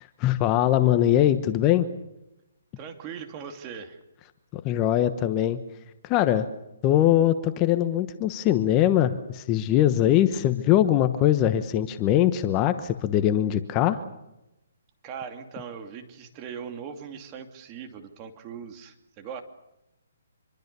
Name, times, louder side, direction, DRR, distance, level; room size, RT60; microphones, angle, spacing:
voice 1, 0.0-1.9 4.5-5.6 6.0-6.5 6.8-14.0, left 12 dB, 25° left, 10 dB, 1.1 m, -22 dB
voice 2, 2.8-4.0 15.0-19.4, right 7 dB, 25° right, 6 dB, 2.6 m, -39 dB
26.0 x 24.0 x 6.9 m, 0.92 s
hypercardioid pair, 155°, 0 cm